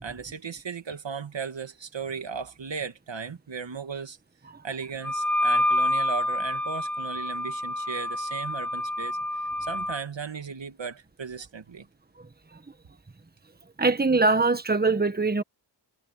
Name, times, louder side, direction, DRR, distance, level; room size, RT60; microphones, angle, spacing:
voice 1, 0.0-4.2 4.6-9.2 9.6-11.8, right 5 dB, 75° right, 2.0 m, -36 dB
Wind instrument woodwind instrument, 5.0-10.0, left 1 dB, 5° left, 0.8 m, -27 dB
voice 2, 12.2-12.6 13.8-15.4, right 3 dB, 20° right, 1.4 m, -23 dB
wide cardioid pair, 75°, 45 cm